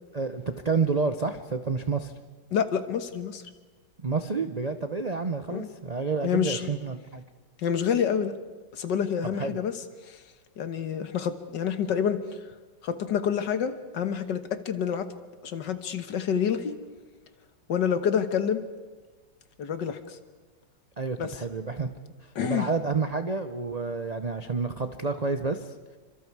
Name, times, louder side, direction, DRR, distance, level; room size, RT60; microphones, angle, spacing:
voice 1, 0.1-2.1 4.0-7.2 9.4-9.6 21.0-21.9 22.2-25.7, right 4 dB, 50° right, 8 dB, 0.4 m, -29 dB
voice 2, 2.5-3.4 5.5-5.7 6.2-6.6 7.6-8.3 8.7-9.7 10.1-10.2 10.6-12.2 12.8-15.1 15.4-16.8 17.7-18.6 19.6-20.2 21.2-21.4 22.4-22.7, left 8 dB, 70° left, 10 dB, 1.9 m, -27 dB
28.5 x 25.0 x 4.8 m, 1.3 s
omnidirectional pair, 2.0 m